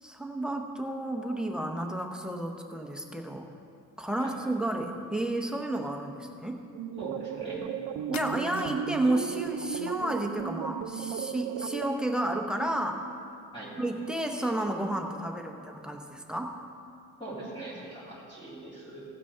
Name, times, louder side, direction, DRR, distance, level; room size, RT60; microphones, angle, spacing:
voice 1, 0.0-3.5 4.0-6.6 8.1-13.0 13.8-16.5, right 1 dB, ahead, 3 dB, 0.7 m, -31 dB
sound 1, 6.7-11.9, right 10 dB, 80° right, 0.6 m, -35 dB
voice 2, 7.0-7.7 13.5-13.7 17.2-19.0, right 2 dB, 15° left, -9 dB, 2.8 m, -41 dB
sound 2, 8.1-9.0, left 8 dB, 60° left, 0.6 m, -44 dB
16.0 x 6.1 x 5.5 m, 2.4 s
cardioid pair, 145°, 32 cm